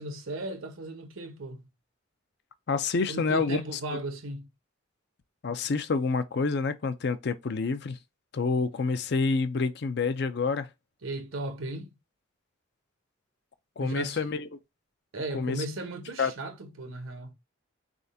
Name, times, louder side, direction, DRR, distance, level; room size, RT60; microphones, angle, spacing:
voice 1, 0.0-1.7 3.1-4.5 11.0-11.9 13.8-14.4 15.1-17.3, right 2 dB, 85° right, 1.0 m, -36 dB
voice 2, 2.7-3.6 5.4-8.0 8.3-10.7 13.8-14.5 15.3-15.6 16.2-16.3, left 4 dB, 55° left, 0.5 m, -28 dB
4.3 x 3.6 x 2.6 m
head